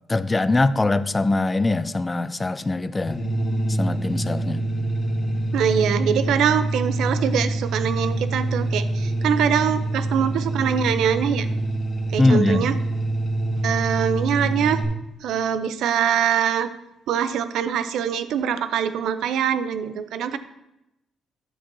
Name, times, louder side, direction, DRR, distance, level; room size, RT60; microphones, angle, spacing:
voice 1, 0.1-3.2 3.7-4.6 12.2-12.7, left 2 dB, 20° left, 14 dB, 0.4 m, -22 dB
sound 1, 3.1-14.8, right 2 dB, 40° left, 1.9 m, -25 dB
voice 2, 5.5-11.5 12.1-12.8 13.6-14.8 15.2-16.7 17.1-20.4, right 8 dB, 80° right, 12 dB, 0.5 m, -23 dB
10.0 x 7.2 x 2.7 m, 0.89 s
cardioid pair, 90°, 0 cm